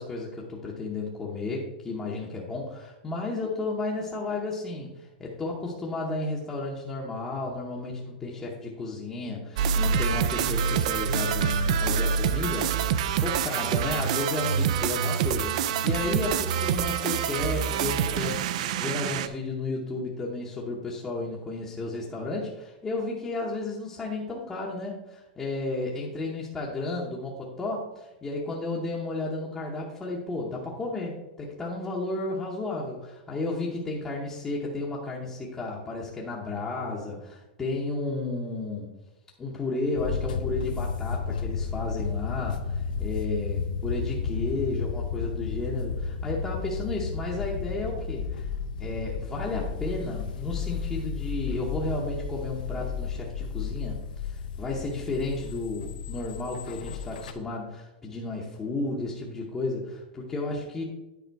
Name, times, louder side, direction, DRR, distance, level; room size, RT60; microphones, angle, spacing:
voice 1, 0.0-38.9 39.4-48.5 48.8-54.0 54.2-60.8, left 2 dB, 10° left, -4 dB, 0.8 m, -33 dB
sound 1, 9.6-19.3, right 7 dB, 50° right, 0.4 m, -26 dB
sound 2, 39.9-57.3, left 5 dB, 75° left, 0.7 m, -33 dB
9.4 x 5.0 x 4.6 m, 1.0 s
supercardioid pair, 170°, 5 cm